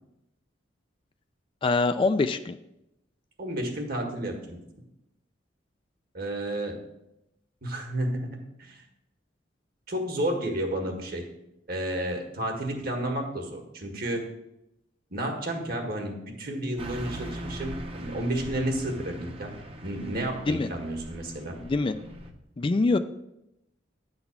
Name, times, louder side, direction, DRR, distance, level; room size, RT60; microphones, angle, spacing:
voice 1, 1.6-2.6 20.5-20.7 21.6-21.9 22.6-23.0, left 3 dB, 30° left, 10 dB, 0.3 m, -24 dB
voice 2, 3.4-4.6 6.1-6.8 7.6-8.8 9.9-11.2 11.7-14.2 15.1-19.5 19.8-21.6, right 1 dB, 55° right, 3 dB, 1.6 m, -31 dB
Car passing by / Truck, 16.8-22.3, right 1 dB, 30° right, 0.8 m, -40 dB
9.7 x 4.0 x 7.1 m, 0.86 s
head